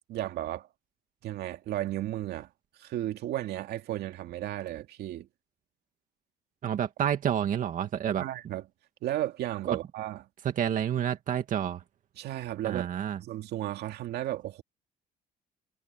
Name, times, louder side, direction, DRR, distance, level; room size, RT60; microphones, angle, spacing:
voice 1, 0.1-0.7 1.2-2.5 2.8-5.3 8.2-8.6 9.0-10.2 12.2-12.9 13.2-14.6, right 13 dB, 75° right, 2.5 m, -34 dB
voice 2, 6.6-8.2 9.6-9.8 10.6-11.8 12.6-13.2, right 9 dB, 50° right, 2.0 m, -29 dB
cardioid pair, 110°, 17 cm